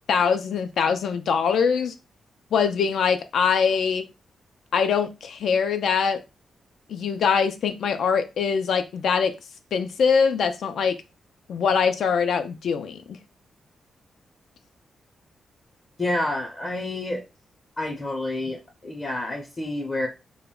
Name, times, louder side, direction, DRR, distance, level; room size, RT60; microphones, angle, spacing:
voice 1, 0.1-1.9 2.5-4.0 4.7-6.2 6.9-9.3 9.7-10.9 11.5-13.2, left 6 dB, 75° left, 0.3 m, -23 dB
voice 2, 16.0-17.2 17.8-20.1, left 1 dB, 30° left, 0.6 m, -29 dB
2.1 x 2.1 x 3.6 m
wide cardioid pair, 125°, 0 cm